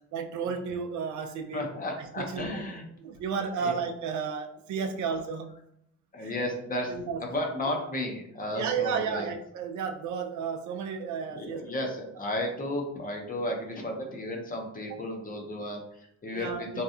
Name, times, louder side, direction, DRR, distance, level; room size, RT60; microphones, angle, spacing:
voice 1, 0.1-1.6 2.2-2.6 3.0-5.5 6.2-6.3 6.9-7.2 8.5-11.6 14.9-15.0 16.3-16.8, right 6 dB, 70° right, 5 dB, 0.5 m, -32 dB
voice 2, 1.5-2.9 3.6-3.7 6.1-6.9 7.2-9.3 11.3-16.8, left 1 dB, 30° left, 1 dB, 0.7 m, -33 dB
2.8 x 2.3 x 2.4 m, 0.73 s
cardioid pair, 90°, 30 cm